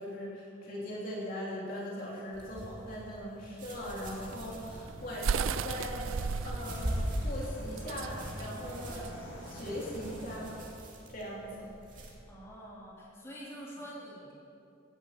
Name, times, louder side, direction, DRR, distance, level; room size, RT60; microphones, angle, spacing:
voice 1, 0.0-10.6 11.1-11.7, equal, 45° left, -5 dB, 3.3 m, -40 dB
sound 1, 2.3-12.1, equal, 40° right, 2.8 m, -41 dB
Bicycle, 3.4-10.9, equal, 60° left, 3.0 m, -46 dB
sound 2, 4.2-9.8, right 6 dB, 85° right, 0.4 m, -36 dB
voice 2, 12.3-14.3, equal, 15° left, -7 dB, 3.6 m, -46 dB
16.5 x 10.5 x 7.5 m, 2.7 s
head